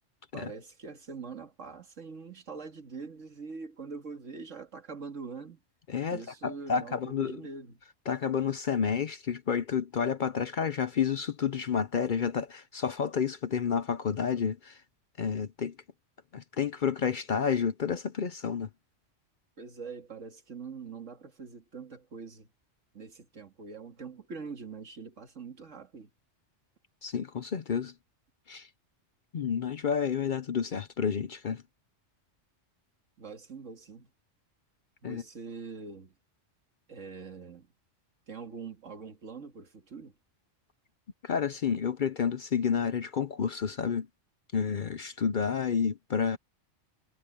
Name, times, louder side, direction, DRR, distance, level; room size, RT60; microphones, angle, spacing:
voice 1, 0.3-5.6 6.1-7.8 19.6-22.5 22.9-26.1 33.2-34.1 35.0-36.1 36.9-37.7 38.3-40.2, right 5 dB, 80° right, 2.5 m, -43 dB
voice 2, 5.9-7.4 8.1-14.8 15.2-15.7 16.3-18.7 27.0-27.9 28.5-28.7 29.3-31.6 35.0-35.2 41.2-44.1 44.5-46.4, left 7 dB, 50° left, 0.7 m, -30 dB
omnidirectional pair, 1.3 m